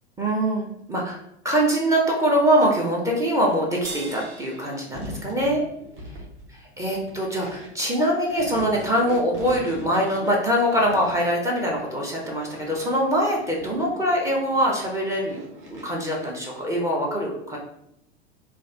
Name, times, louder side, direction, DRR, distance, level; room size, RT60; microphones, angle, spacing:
voice 1, 0.2-1.2 1.4-5.6 6.8-15.4 15.7-17.6, equal, 10° right, -3 dB, 0.5 m, -23 dB
sound 1, 3.8-6.4, right 3 dB, 60° right, 0.7 m, -41 dB
sound 2, 4.9-16.7, equal, 40° right, 1.0 m, -41 dB
3.1 x 2.4 x 2.8 m, 0.77 s
figure-of-eight pair, 85°, 33 cm